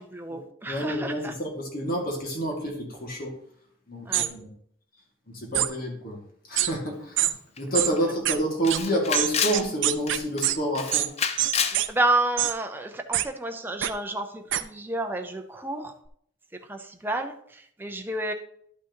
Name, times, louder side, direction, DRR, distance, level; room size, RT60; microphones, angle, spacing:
voice 1, 0.0-1.3 4.1-4.3 11.9-15.9 16.7-18.3, right 2 dB, 10° right, 4 dB, 0.6 m, -30 dB
voice 2, 0.7-3.3 3.9-4.5 5.3-6.2 6.5-11.1, right 1 dB, 50° left, 0 dB, 2.1 m, -29 dB
sound 1, 4.1-4.3 5.5-5.7 6.6-6.7 7.2-7.3 7.7-7.9 8.3-8.4 8.7-8.8 9.1-10.6 10.9-11.1 11.4-11.9 12.4-12.5 13.1-13.3 13.8-13.9 14.5-14.6, right 13 dB, 65° right, 0.5 m, -24 dB
Camera, 7.6-7.7 8.0-8.1 8.6-9.7 10.1-10.4 10.7-11.8, left 6 dB, 30° left, 0.5 m, -28 dB
11.5 x 5.9 x 3.0 m, 0.66 s
head